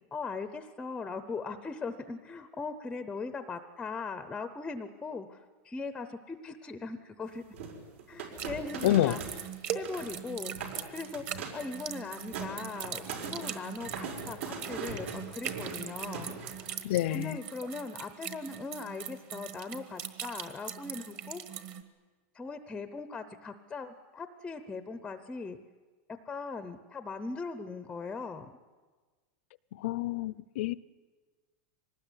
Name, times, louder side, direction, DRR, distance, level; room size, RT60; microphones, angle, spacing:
voice 1, 0.1-7.4 8.1-9.2 9.7-16.4 17.1-21.6 22.3-25.6 26.2-28.5, left 4 dB, 10° left, 10 dB, 0.7 m, -40 dB
sound 1, 7.5-9.4 9.7-10.2 10.5-10.8 11.1-11.7 12.0-16.7, right 5 dB, 75° right, 5.3 m, -40 dB
sound 2, 8.4-21.8, right 9 dB, 30° right, 1.4 m, -41 dB
voice 2, 8.8-9.2 16.8-17.4 29.7-30.7, left 14 dB, 60° left, 19 dB, 0.7 m, -28 dB
24.5 x 19.5 x 10.0 m, 1.4 s
supercardioid pair, 175°, 7 cm